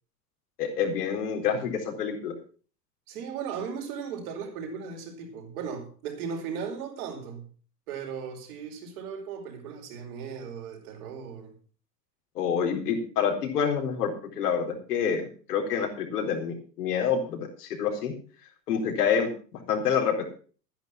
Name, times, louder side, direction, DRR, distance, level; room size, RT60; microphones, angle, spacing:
voice 1, 0.6-2.3 12.3-18.1 18.7-20.2, left 7 dB, 65° left, 4.2 m, -27 dB
voice 2, 3.1-7.5 7.9-11.6, right 6 dB, 60° right, 5.0 m, -37 dB
12.5 x 10.5 x 5.8 m
figure-of-eight pair, 85°, 50 cm